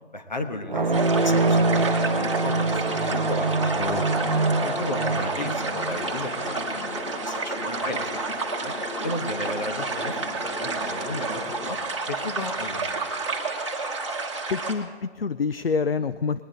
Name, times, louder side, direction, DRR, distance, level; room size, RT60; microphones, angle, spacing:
voice 1, 0.1-3.7 4.6-8.7 9.0-11.8 12.1-13.0, left 2 dB, 40° left, 6 dB, 1.2 m, -34 dB
sound 1, 0.7-6.8, right 3 dB, 45° right, 0.5 m, -25 dB
sound 2, 0.8-11.7, left 2 dB, 85° left, 1.6 m, -37 dB
sound 3, 0.9-14.7, right 3 dB, 25° right, 1.3 m, -31 dB
voice 2, 14.5-16.4, left 5 dB, 60° left, 12 dB, 0.5 m, -27 dB
20.5 x 9.7 x 3.8 m, 1.5 s
figure-of-eight pair, 170°, 34 cm